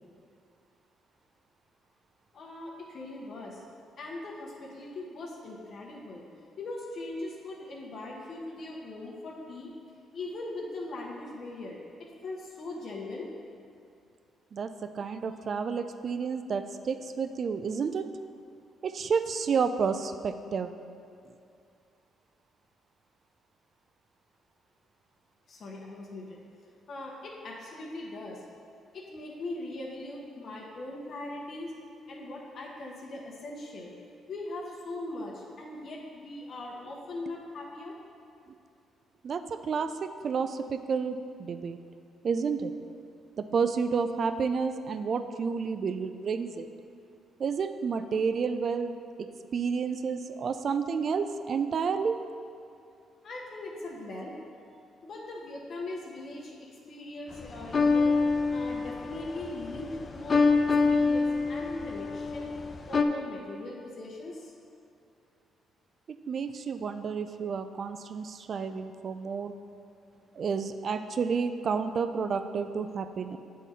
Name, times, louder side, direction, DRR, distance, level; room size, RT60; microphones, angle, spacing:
voice 1, 2.3-3.6 4.0-6.2 6.6-9.7 10.1-13.3 25.5-26.4 26.9-28.5 28.9-31.7 32.1-33.9 34.3-37.9 53.2-54.3 55.0-56.6 56.9-60.4 60.8-62.5 62.9-64.5, left 2 dB, 55° left, -3 dB, 0.9 m, -40 dB
voice 2, 14.5-18.1 18.8-20.7 39.2-41.8 42.2-42.7 43.4-46.7 47.4-48.9 49.2-49.3 49.5-52.2 66.1-69.5 70.4-73.4, right 5 dB, 50° right, 10 dB, 0.3 m, -30 dB
sound 1, 57.3-63.0, left 4 dB, 40° left, 0.4 m, -26 dB
8.2 x 3.8 x 4.1 m, 2.5 s
cardioid pair, 90°, 0 cm